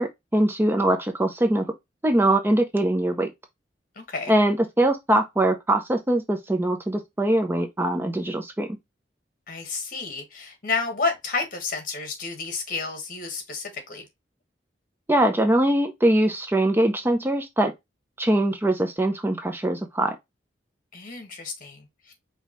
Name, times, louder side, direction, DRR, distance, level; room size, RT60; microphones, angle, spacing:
voice 1, 0.0-1.7 2.0-3.3 4.3-8.8 15.1-17.7 18.2-20.2, right 1 dB, 15° right, 0.5 m, -22 dB
voice 2, 3.9-4.3 9.5-14.0 20.9-22.1, left 4 dB, 50° left, 1.4 m, -31 dB
5.0 x 2.8 x 3.0 m
head